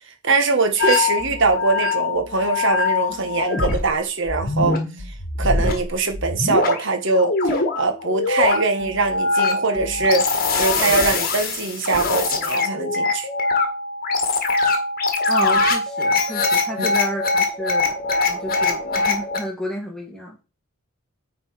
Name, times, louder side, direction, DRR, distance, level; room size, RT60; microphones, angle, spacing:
voice 1, 0.2-4.8 5.4-10.3 10.5-13.3 16.8-16.9, right 3 dB, 60° right, 1.4 m, -22 dB
sound 1, 0.8-3.9 4.3-6.8 7.2-19.4, left 3 dB, 45° left, 1.6 m, -22 dB
voice 2, 15.3-18.0 18.3-20.4, equal, 5° left, 1.9 m, -31 dB
9.2 x 4.2 x 4.7 m
head